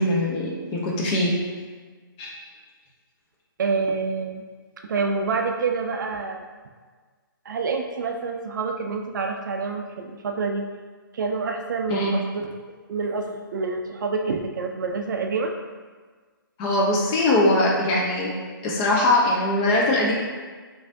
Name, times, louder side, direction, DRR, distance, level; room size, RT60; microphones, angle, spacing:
voice 1, 0.0-1.3 2.2-2.3 11.9-12.1 16.6-18.3 18.6-20.1, left 1 dB, 20° left, -3 dB, 0.5 m, -21 dB
voice 2, 3.6-4.4 4.8-6.4 7.5-10.6 11.1-12.5 12.9-15.5, right 4 dB, 60° right, 3 dB, 0.4 m, -27 dB
3.2 x 2.6 x 2.5 m, 1.5 s
hypercardioid pair, 140°, 12 cm